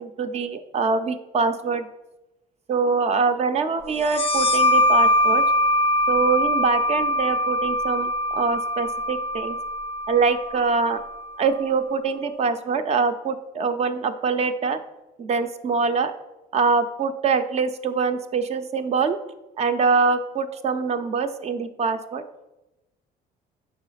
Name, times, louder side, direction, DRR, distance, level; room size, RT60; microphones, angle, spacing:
voice 1, 0.0-1.9 2.7-5.4 6.1-9.6 10.1-11.0 11.4-14.8 15.2-16.1 16.5-19.2 19.6-22.2, right 5 dB, 40° right, 10 dB, 0.5 m, -24 dB
sound 1, 4.0-11.3, equal, 35° left, 0.4 m, -22 dB
4.6 x 4.1 x 5.6 m, 0.98 s
cardioid pair, 110°, 17 cm